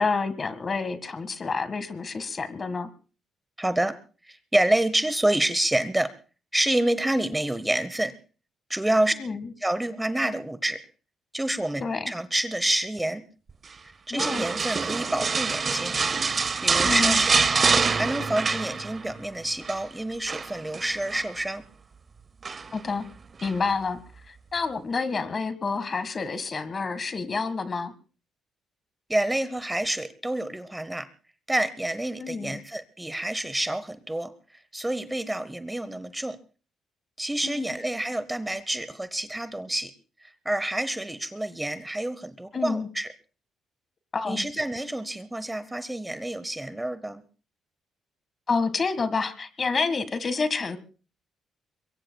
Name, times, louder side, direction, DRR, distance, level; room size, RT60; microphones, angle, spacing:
voice 1, 0.0-2.9 9.2-9.5 11.8-12.1 14.1-14.4 16.8-17.2 22.7-23.0 23.4-24.0 24.3-27.9 32.2-32.6 37.4-37.7 42.5-42.9 44.1-44.4 48.5-50.8, left 4 dB, 40° left, 12 dB, 1.7 m, -28 dB
voice 2, 3.6-4.0 4.2-6.1 6.5-8.1 8.7-9.1 9.6-10.8 11.3-13.2 14.1-16.0 16.6-17.3 17.9-21.7 29.1-31.1 31.5-34.3 34.7-36.4 37.2-39.9 40.2-43.1 44.2-47.2, right 1 dB, 10° right, 14 dB, 0.9 m, -28 dB
sound 1, 14.2-19.2 19.4-19.8 20.3-21.3 22.4-22.9 23.4-23.5, right 4 dB, 35° right, 0.8 m, -25 dB
24.5 x 22.5 x 2.3 m, 0.37 s
cardioid pair, 90°, 0 cm